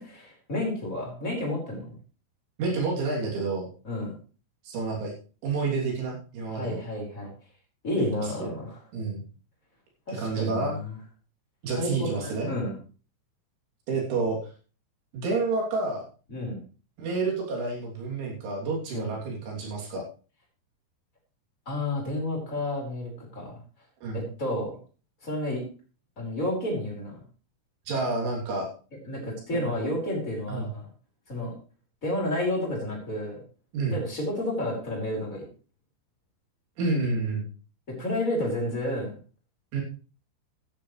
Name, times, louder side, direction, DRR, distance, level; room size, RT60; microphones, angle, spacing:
voice 1, 0.0-1.8 3.8-4.1 6.5-7.3 7.8-8.8 10.1-10.9 11.8-12.8 16.3-16.6 18.9-19.1 21.7-23.5 24.1-24.7 25.2-25.6 26.2-27.1 29.0-30.8 31.3-31.5 32.0-33.4 33.9-35.4 37.9-39.1, left 1 dB, 15° left, -2 dB, 4.6 m, -31 dB
voice 2, 2.6-3.7 4.6-5.1 5.4-6.8 8.2-8.5 8.9-9.2 10.1-10.8 11.6-12.5 13.9-14.4 15.1-16.1 17.0-20.1 24.0-24.2 27.9-28.7 29.5-29.8 30.5-30.7 33.7-34.0 36.8-37.5 39.7-39.8, right 3 dB, 70° right, -2 dB, 5.4 m, -29 dB
14.5 x 10.5 x 3.3 m, 0.36 s
omnidirectional pair, 5.8 m